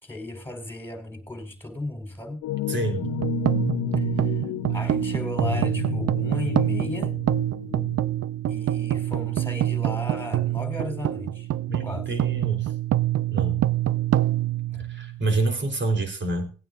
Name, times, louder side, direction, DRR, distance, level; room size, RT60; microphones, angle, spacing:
voice 1, 0.0-2.4 4.0-4.4 4.7-7.1 8.5-11.5 11.8-12.1 14.7-14.8, left 1 dB, 5° left, 4.9 m, -35 dB
sound 1, 2.4-8.2, left 15 dB, 75° left, 0.6 m, -31 dB
voice 2, 2.7-3.1 11.7-12.7 13.3-13.6 14.8-16.5, right 2 dB, 40° right, 3.8 m, -27 dB
sound 2, 3.0-15.4, right 13 dB, 55° right, 0.6 m, -26 dB
20.0 x 9.2 x 2.6 m
cardioid pair, 90°, 30 cm